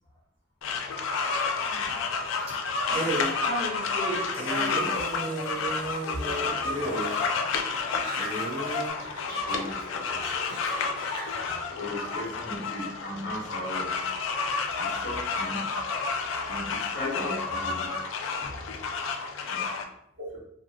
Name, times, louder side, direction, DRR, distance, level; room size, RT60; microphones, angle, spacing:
sound 1, 0.6-19.8, left 4 dB, 90° left, 0.3 m, -30 dB
sound 2, 1.9-2.2 2.5-2.6 2.9-3.3 3.8-3.9 4.3-7.1 7.7-7.8 8.1-8.9, right 2 dB, 30° right, 0.5 m, -33 dB
voice 1, 2.8-5.6 6.0-8.0 10.1-10.4 11.8-11.9 17.1-17.6 20.2-20.3, right 1 dB, 75° right, -4 dB, 0.9 m, -38 dB
sound 3, 6.5-8.7 9.0-11.5, left 1 dB, 20° left, 0.7 m, -41 dB
voice 2, 9.4-10.2 11.7-13.9 14.8-15.7 16.5-18.0 18.4-18.5 19.5-19.7, left 1 dB, 55° left, -5 dB, 0.8 m, -37 dB
2.7 x 2.5 x 2.3 m, 0.76 s
head